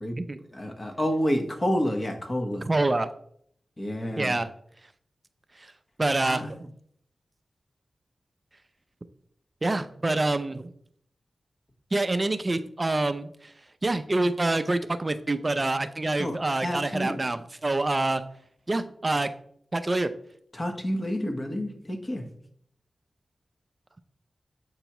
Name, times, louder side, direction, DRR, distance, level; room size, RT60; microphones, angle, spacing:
voice 1, 0.5-2.7 3.8-4.4 6.2-6.5 16.2-17.2 20.5-22.2, equal, 35° left, 4 dB, 1.2 m, -29 dB
voice 2, 2.7-3.1 4.2-4.5 5.6-5.7 6.0-6.6 9.6-10.7 11.9-13.5 13.8-18.2 18.7-19.3 19.7-20.1, right 2 dB, 35° right, 10 dB, 0.4 m, -26 dB
7.8 x 4.6 x 3.0 m, 0.66 s
cardioid pair, 50°, 0 cm